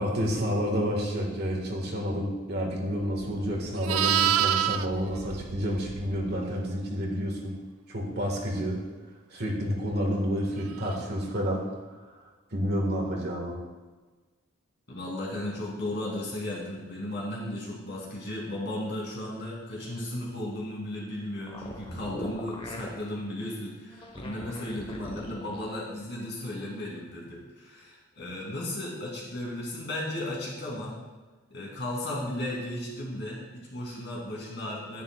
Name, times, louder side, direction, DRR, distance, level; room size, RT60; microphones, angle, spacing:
voice 1, 0.0-7.6 7.9-8.8 9.3-11.6 11.9-13.6, equal, 50° right, 0 dB, 1.6 m, -29 dB
Livestock farm animals working animals, 3.1-6.4 10.8-11.0, right 10 dB, 80° right, 0.3 m, -28 dB
voice 2, 14.9-31.0 31.5-35.0, left 1 dB, 55° left, -4 dB, 2.8 m, -35 dB
sound 1, 21.4-23.0 23.9-25.7, left 1 dB, 25° left, 1.0 m, -40 dB
10.5 x 9.3 x 2.3 m, 1.3 s
head